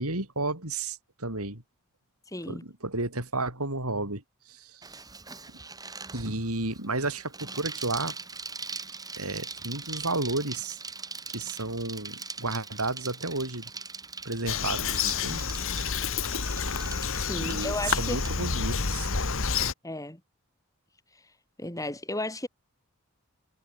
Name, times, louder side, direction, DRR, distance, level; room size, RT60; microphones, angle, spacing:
voice 1, 0.0-1.6 2.5-4.2 4.5-4.8 6.1-8.1 9.2-10.8 11.3-13.7 14.2-15.5 17.4-19.1, right 2 dB, 75° right, 6.5 m, -32 dB
voice 2, 2.3-2.6 17.2-18.2 19.8-20.2 21.6-22.5, left 2 dB, 15° left, 4.6 m, -34 dB
Bicycle, 4.8-18.4, right 4 dB, 15° right, 6.1 m, -41 dB
Bird vocalization bird call bird song, 14.5-19.7, left 5 dB, 65° left, 2.2 m, -29 dB
head